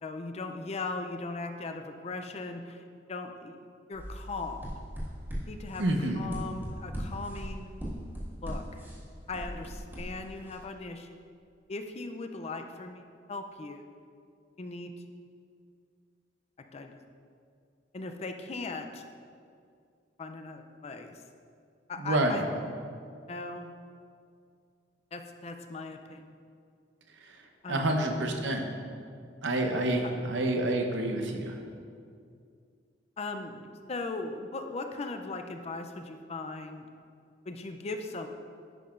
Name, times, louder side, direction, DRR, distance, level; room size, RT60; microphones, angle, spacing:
voice 1, 0.0-4.6 5.5-5.8 6.2-7.7 8.4-8.8 9.3-11.2 11.7-13.0 13.3-13.9 14.6-14.9 16.7-17.0 17.9-19.0 20.2-21.2 21.9-22.5 23.3-23.7 25.1-26.2 27.6-27.9 33.2-36.9 37.5-38.3, left 3 dB, 35° left, 6 dB, 0.4 m, -38 dB
sound 1, 3.9-10.6, equal, 10° right, 1.7 m, -40 dB
voice 2, 5.8-6.3 22.0-22.4 27.2-27.4 27.7-28.7 29.4-31.6, right 1 dB, 90° right, 3 dB, 0.8 m, -28 dB
10.5 x 5.7 x 2.5 m, 2.3 s
head